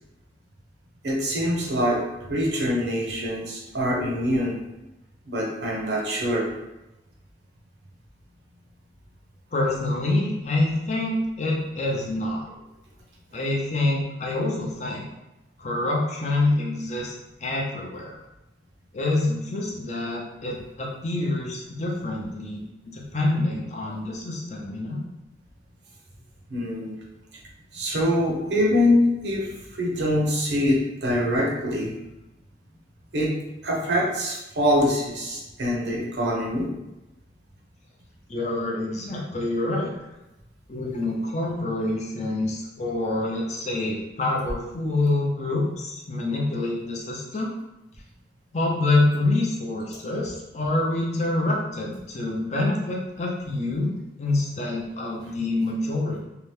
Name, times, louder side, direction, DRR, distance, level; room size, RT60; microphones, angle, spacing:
voice 1, 1.0-4.6 5.3-6.5 26.5-27.0 27.7-31.9 33.1-33.3 33.6-36.7, left 1 dB, 70° right, -1 dB, 0.7 m, -24 dB
voice 2, 9.5-12.4 13.3-15.0 15.6-17.1 17.4-18.2 18.9-22.6 22.9-25.0 38.3-39.9 40.7-47.5 48.5-56.2, left 2 dB, 40° left, -2 dB, 0.5 m, -26 dB
2.8 x 2.1 x 3.2 m, 0.96 s
head